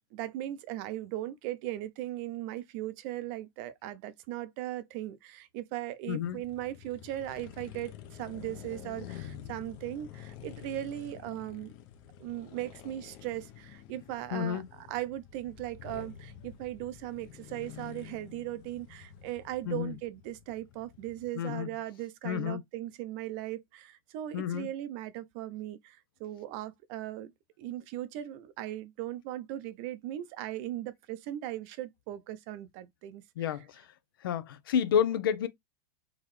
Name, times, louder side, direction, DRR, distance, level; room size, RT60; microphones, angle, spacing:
voice 1, 0.1-11.7 12.2-27.3 27.6-33.2, right 14 dB, 45° right, 0.5 m, -38 dB
voice 2, 6.1-6.4 14.3-14.6 19.7-19.9 21.4-21.7 22.2-22.6 24.3-24.7 33.4-33.9 34.2-35.5, left 9 dB, 85° left, 0.7 m, -30 dB
sound 1, 6.2-21.3, left 10 dB, 40° left, 0.7 m, -49 dB
3.8 x 3.1 x 3.1 m
supercardioid pair, 155°, 11 cm